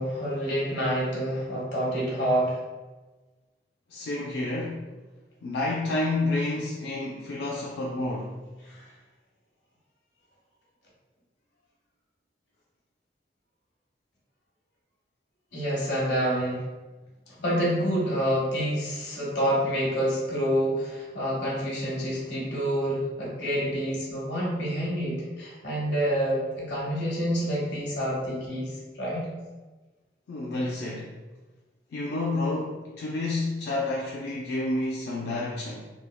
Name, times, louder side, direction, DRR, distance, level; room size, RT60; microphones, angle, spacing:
voice 1, 0.0-2.6 8.6-8.9 15.5-16.6 17.3-28.7 29.0-29.3, equal, 85° left, -5 dB, 1.0 m, -27 dB
voice 2, 3.9-4.8 5.4-8.4 30.3-31.1 31.9-35.8, left 2 dB, 70° left, -3 dB, 0.3 m, -29 dB
3.3 x 2.1 x 2.2 m, 1.2 s
head